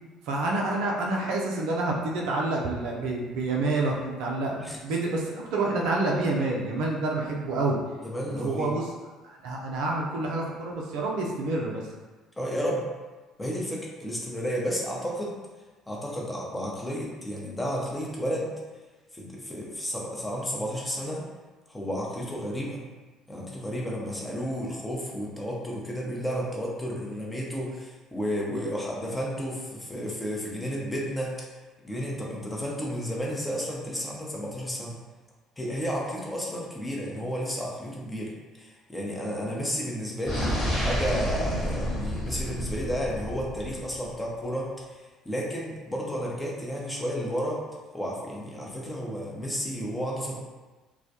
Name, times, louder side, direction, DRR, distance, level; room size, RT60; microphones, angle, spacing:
voice 1, 0.3-7.8 8.3-8.9 9.2-11.8, right 2 dB, 65° right, -1 dB, 0.4 m, -28 dB
voice 2, 8.0-8.7 12.4-12.9 13.4-15.4 15.9-18.5 19.1-21.2 21.7-22.8 23.3-31.4 31.8-35.0 35.6-47.6 47.9-50.4, equal, 15° left, -3 dB, 0.6 m, -32 dB
sound 1, 40.2-44.1, equal, 40° left, 1.0 m, -30 dB
2.2 x 2.1 x 2.7 m, 1.3 s
hypercardioid pair, 55°, 0 cm